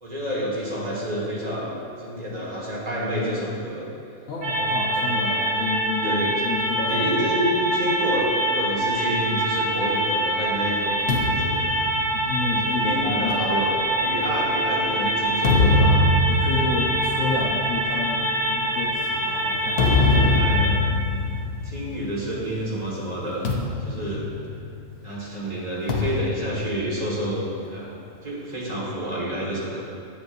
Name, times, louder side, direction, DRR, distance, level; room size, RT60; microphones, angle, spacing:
voice 1, 0.0-3.9 5.0-5.7 6.0-6.4 6.9-11.8 12.5-13.7 14.0-16.1 20.1-20.8 21.6-24.3 25.0-29.8, equal, 30° right, -6 dB, 1.9 m, -29 dB
voice 2, 4.3-7.3 12.1-13.6 16.3-20.3, left 4 dB, 80° left, -6 dB, 1.4 m, -30 dB
sound 1, 4.4-20.7, right 1 dB, 65° right, 1.1 m, -25 dB
sound 2, 11.1-14.7 15.2-22.6 22.9-23.1 23.5-25.1 25.9-27.6, left 2 dB, 55° left, 0.9 m, -24 dB
10.0 x 7.9 x 2.6 m, 2.5 s
omnidirectional pair, 1.4 m